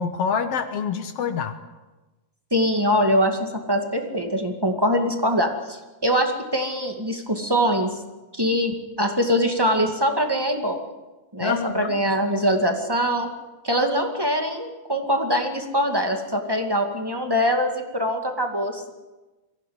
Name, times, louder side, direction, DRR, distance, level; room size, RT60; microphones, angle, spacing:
voice 1, 0.0-1.6 11.4-11.9, left 6 dB, 60° left, 9 dB, 2.0 m, -26 dB
voice 2, 2.5-8.0 8.3-10.8 11.3-13.3 13.6-18.9, equal, 10° right, 4 dB, 1.8 m, -23 dB
23.0 x 15.5 x 9.6 m, 1.1 s
omnidirectional pair, 3.4 m